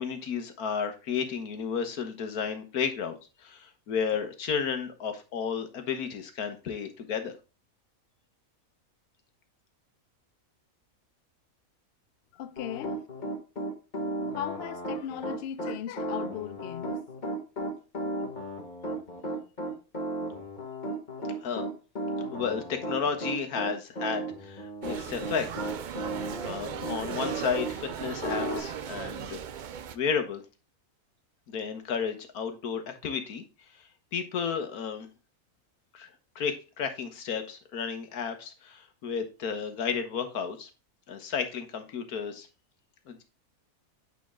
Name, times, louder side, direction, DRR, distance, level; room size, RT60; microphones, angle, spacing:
voice 1, 0.0-7.3 21.4-21.6 22.3-25.5 26.4-29.4 29.9-30.4 31.5-33.4 34.1-35.1 35.9-36.1 36.3-40.7 41.1-42.5 43.1-43.2, left 6 dB, 85° left, 1.6 m, -32 dB
voice 2, 12.3-13.0 14.4-17.0, left 11 dB, 65° left, 0.6 m, -37 dB
Piano, 12.6-27.7 28.2-28.6, right 1 dB, 30° left, 1.6 m, -34 dB
sound 1, 24.8-30.0, right 8 dB, 80° right, 0.4 m, -37 dB
8.8 x 4.5 x 3.7 m
omnidirectional pair, 1.5 m